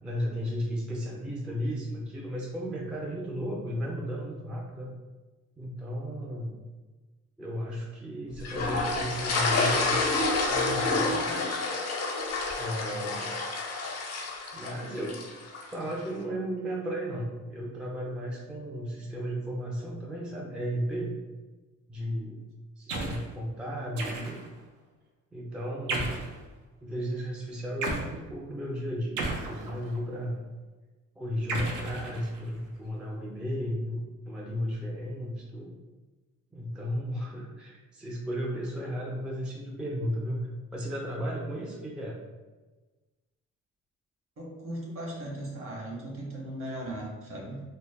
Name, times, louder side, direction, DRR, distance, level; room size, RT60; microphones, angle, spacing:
voice 1, 0.0-4.9 5.6-6.6 7.4-10.2 10.5-11.4 12.6-13.4 14.5-15.4 15.6-21.2 21.9-22.4 22.8-24.4 25.3-26.1 26.8-30.4 31.2-35.7 36.5-40.4 40.7-42.2, equal, 5° right, -2 dB, 0.3 m, -34 dB
sound 1, 8.4-15.7, left 3 dB, 55° left, 0.5 m, -29 dB
sound 2, 22.9-23.3 24.0-24.6 25.9-26.4 27.8-28.1 29.2-30.0 31.5-32.6, right 3 dB, 90° right, 0.5 m, -33 dB
voice 2, 44.4-47.6, right 1 dB, 45° right, -2 dB, 0.9 m, -38 dB
2.1 x 2.0 x 3.3 m, 1.2 s
cardioid pair, 90°, 30 cm